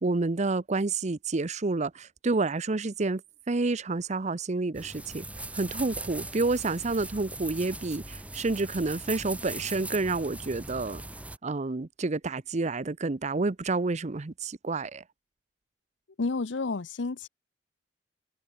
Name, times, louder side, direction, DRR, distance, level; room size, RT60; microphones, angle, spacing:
voice 1, 0.0-3.2 3.5-5.3 5.5-11.0 11.4-15.0, right 3 dB, 40° right, 0.7 m, -29 dB
sound 1, 4.7-11.4, right 2 dB, 10° right, 1.0 m, -40 dB
voice 2, 16.2-17.3, left 3 dB, 80° left, 0.8 m, -30 dB
head